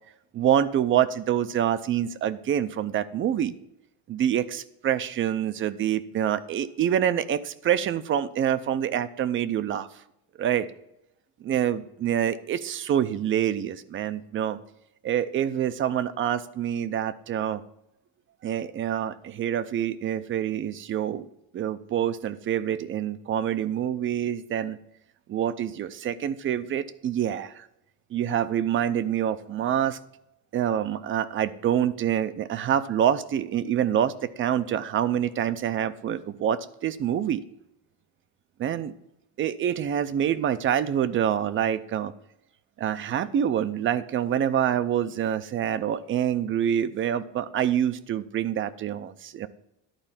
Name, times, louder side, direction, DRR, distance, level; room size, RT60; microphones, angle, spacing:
voice 1, 0.3-3.5 4.1-9.9 10.4-10.7 11.4-14.6 15.0-17.6 18.4-21.3 21.5-24.8 25.3-27.7 28.1-30.0 30.5-37.4 38.6-38.9 39.4-42.1 42.8-49.5, right 10 dB, 35° right, 14 dB, 0.5 m, -26 dB
11.5 x 4.3 x 7.3 m, 0.83 s
cardioid pair, 155°, 36 cm